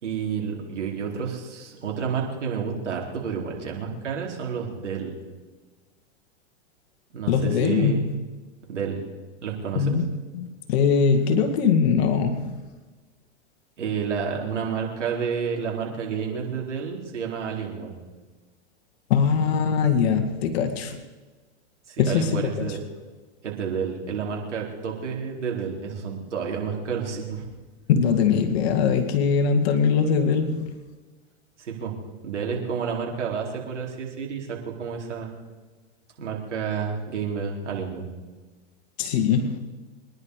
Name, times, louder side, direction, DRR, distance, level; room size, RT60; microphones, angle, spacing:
voice 1, 0.0-5.1 7.1-8.1 8.7-9.0 9.4-10.0 13.8-17.9 21.9-22.8 23.4-27.5 31.6-31.9 32.2-35.3 36.2-38.1, right 6 dB, 85° right, -1 dB, 4.4 m, -30 dB
voice 2, 7.3-8.0 9.8-10.1 10.3-12.6 19.1-21.0 22.0-22.8 27.9-30.7 39.0-39.6, left 6 dB, 60° left, 5 dB, 2.1 m, -22 dB
25.0 x 11.0 x 4.9 m, 1.3 s
hypercardioid pair, 120°, 35 cm